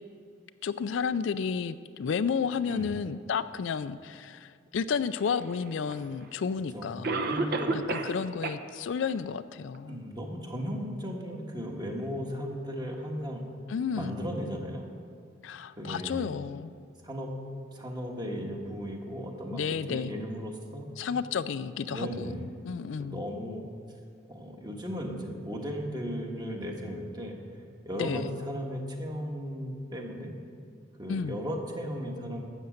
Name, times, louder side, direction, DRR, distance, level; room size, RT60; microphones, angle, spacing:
voice 1, 0.6-7.2 7.7-10.0 13.7-14.2 15.4-16.7 19.5-20.1 21.0-23.2 28.0-28.3 31.1-31.4, left 6 dB, 70° left, 13 dB, 0.4 m, -32 dB
Cough, 5.9-6.0 7.0-8.2 8.4-8.5 9.1-9.2 9.7-9.8, right 3 dB, 55° right, 0.8 m, -29 dB
voice 2, 7.2-8.1 9.9-13.4 13.9-14.9 15.8-16.3 17.0-17.3 17.7-20.9 21.9-22.5 23.0-23.6 24.3-27.3 27.8-30.3 31.0-32.4, equal, 20° right, 1 dB, 1.4 m, -36 dB
12.5 x 8.2 x 6.5 m, 2.3 s
head